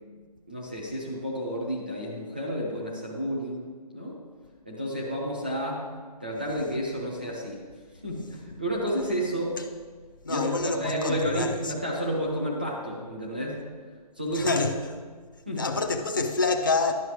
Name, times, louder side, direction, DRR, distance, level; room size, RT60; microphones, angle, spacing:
voice 1, 0.5-4.2 4.7-5.8 6.2-7.6 8.0-9.6 10.3-13.6 14.2-14.6 15.5-15.6, equal, 15° right, 0.6 m, -31 dB
voice 2, 10.2-11.7 14.3-14.7 15.6-16.9, left 3 dB, 30° left, 0.5 m, -27 dB
10.5 x 6.2 x 4.7 m
hypercardioid pair, 180°, 20 cm